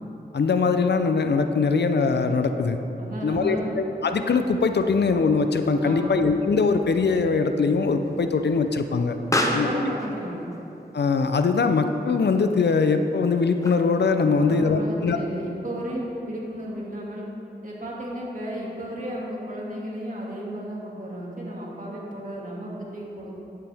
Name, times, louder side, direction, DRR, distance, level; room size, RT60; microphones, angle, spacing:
voice 1, 0.3-2.8 3.2-9.1 9.5-9.7 10.9-15.2, left 4 dB, 75° left, 7 dB, 0.6 m, -22 dB
voice 2, 3.0-3.7 5.8-6.1 9.3-10.5 14.3-17.2 17.6-23.3, right 1 dB, 50° right, -4 dB, 2.3 m, -33 dB
Explosion, 5.2-14.1, left 1 dB, 20° left, 1.0 m, -34 dB
11.5 x 9.1 x 3.5 m, 2.9 s
cardioid pair, 50°, 18 cm